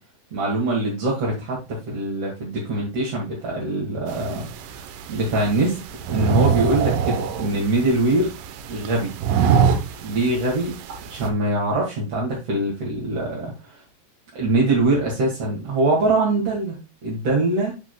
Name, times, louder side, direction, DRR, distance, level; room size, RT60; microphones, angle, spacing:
voice 1, 0.3-5.8 6.1-8.3 8.7-9.1 10.0-10.7 11.2-13.8 14.3-17.7, right 2 dB, 45° right, -4 dB, 2.3 m, -23 dB
sound 1, 4.1-11.3, right 7 dB, 85° right, 3.3 m, -25 dB
11.5 x 4.9 x 2.3 m, 0.28 s
omnidirectional pair, 5.3 m